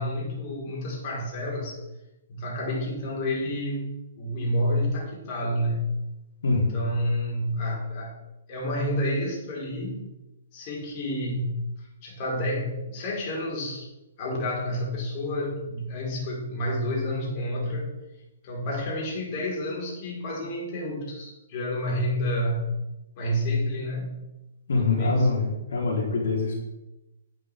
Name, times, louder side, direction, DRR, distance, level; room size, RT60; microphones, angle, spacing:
voice 1, 0.0-1.8 2.3-6.0 6.5-8.1 8.5-10.1 10.5-13.9 14.2-17.9 18.4-22.8 23.2-24.2 24.8-25.3, left 1 dB, 40° left, -3 dB, 4.6 m, -29 dB
voice 2, 6.4-6.8 24.7-26.5, left 3 dB, 70° left, -2 dB, 3.9 m, -24 dB
12.0 x 9.7 x 3.6 m, 0.97 s
hypercardioid pair, 135°, 0 cm